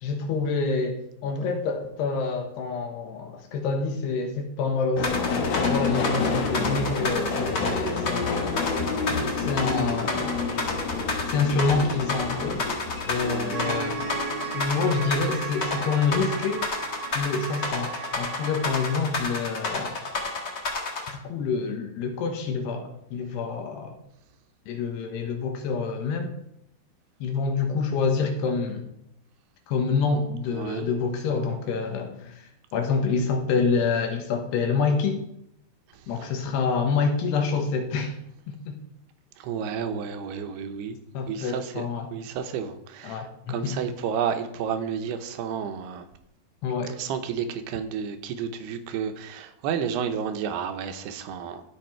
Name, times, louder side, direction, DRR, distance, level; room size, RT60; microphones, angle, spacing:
voice 1, 0.0-8.8 9.4-10.4 11.3-12.8 13.1-14.0 14.5-16.7 17.2-20.0 21.1-24.0 24.7-26.3 27.2-28.9 29.7-32.4 32.7-35.2 36.1-38.2 38.5-38.8 41.2-42.2 43.0-43.8 46.6-46.9, left 4 dB, 85° left, 5 dB, 3.4 m, -27 dB
Subway metro underground, 5.0-15.7 16.0-16.8 17.0-17.2, left 4 dB, 70° left, 1.6 m, -30 dB
sound 1, 5.0-21.1, left 3 dB, 40° left, 1.5 m, -30 dB
voice 2, 13.1-13.6 30.5-30.9 39.4-41.0 41.3-41.8 42.1-43.2 43.5-46.1 47.0-51.6, right 7 dB, 80° right, 8 dB, 2.8 m, -31 dB
sound 2, 13.5-19.0, right 5 dB, 65° right, 2.3 m, -35 dB
15.0 x 5.8 x 4.5 m, 0.78 s
omnidirectional pair, 4.7 m